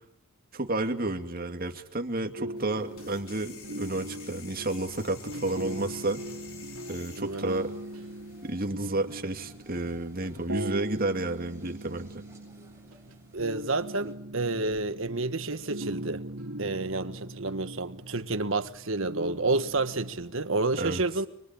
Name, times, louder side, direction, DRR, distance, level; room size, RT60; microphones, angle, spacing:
voice 1, 0.5-6.2 6.9-7.7 8.4-12.2 20.8-21.0, right 2 dB, 40° right, 2.4 m, -31 dB
sound 1, 2.4-20.5, right 1 dB, 80° right, 2.5 m, -40 dB
sound 2, 2.6-8.5, left 6 dB, 65° left, 4.5 m, -50 dB
sound 3, 5.6-14.2, right 1 dB, 10° right, 6.8 m, -57 dB
voice 2, 7.2-7.5 13.3-16.2 16.6-21.3, right 3 dB, 60° right, 1.5 m, -30 dB
24.5 x 24.0 x 9.0 m
head